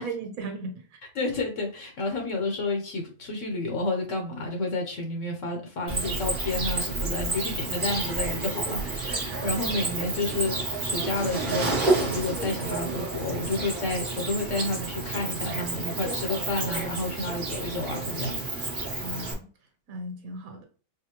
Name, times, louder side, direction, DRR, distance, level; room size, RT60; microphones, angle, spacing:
voice 1, 0.0-1.0 9.3-9.7 19.0-19.5 19.9-20.7, right 2 dB, 85° right, 1.4 m, -37 dB
voice 2, 1.1-18.4, left 2 dB, 65° left, 1.2 m, -30 dB
Cricket, 5.9-19.3, right 3 dB, 40° right, 1.1 m, -30 dB
4.9 x 2.2 x 2.9 m
omnidirectional pair, 1.4 m